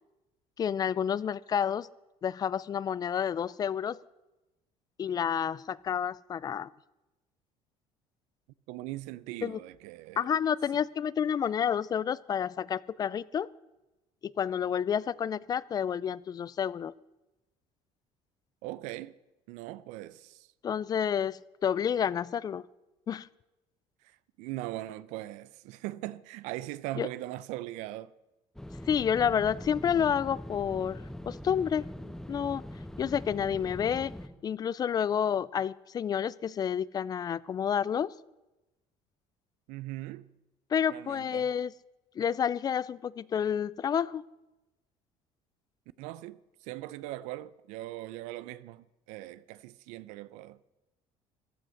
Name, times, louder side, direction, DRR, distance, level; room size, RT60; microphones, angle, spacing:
voice 1, 0.6-1.9 2.2-4.0 5.0-6.7 9.4-9.6 10.2-13.5 14.2-16.9 20.6-22.6 23.1-23.3 27.0-27.1 28.9-31.9 32.3-32.6 33.0-34.1 34.4-38.1 40.7-41.7 42.2-44.2, left 8 dB, 35° left, 0.4 m, -29 dB
voice 2, 8.7-10.3 18.6-19.1 19.5-20.5 24.0-28.1 39.7-40.3 40.9-41.5 46.0-50.6, right 16 dB, 90° right, 0.6 m, -40 dB
sound 1, 28.6-34.3, left 1 dB, 5° left, 1.1 m, -42 dB
15.0 x 12.5 x 6.4 m
cardioid pair, 120°, 12 cm